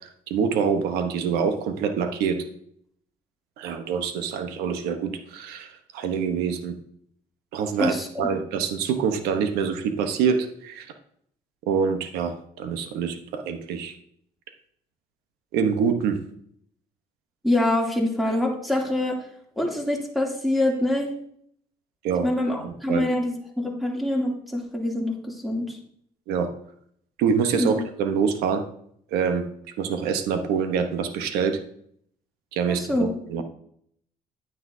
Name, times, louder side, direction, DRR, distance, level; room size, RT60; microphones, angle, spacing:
voice 1, 0.3-2.4 3.6-6.7 7.5-10.9 11.7-13.9 15.5-16.2 22.0-22.3 22.6-23.0 26.3-26.5 27.2-28.6 29.1-29.4 29.8-31.6 32.5-33.4, right 6 dB, 90° right, 7 dB, 1.1 m, -25 dB
voice 2, 17.4-19.2 19.6-21.1 22.2-25.8 27.5-27.8 32.7-33.1, left 1 dB, ahead, -1 dB, 2.8 m, -25 dB
10.5 x 9.6 x 2.7 m, 0.67 s
cardioid pair, 85°, 16 cm